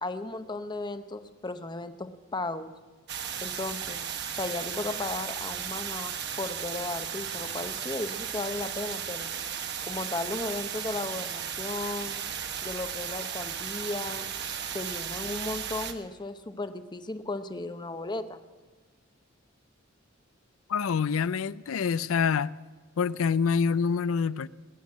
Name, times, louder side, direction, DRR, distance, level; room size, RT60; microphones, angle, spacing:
voice 1, 0.0-2.7 3.4-4.0 4.3-9.3 9.8-12.2 12.6-14.3 14.7-18.4, left 2 dB, 20° left, 0.8 m, -35 dB
sound 1, 3.1-15.9, right 8 dB, 55° right, 1.2 m, -35 dB
voice 2, 20.7-22.6 23.0-24.5, left 6 dB, 80° left, 0.4 m, -26 dB
20.5 x 8.2 x 8.5 m
head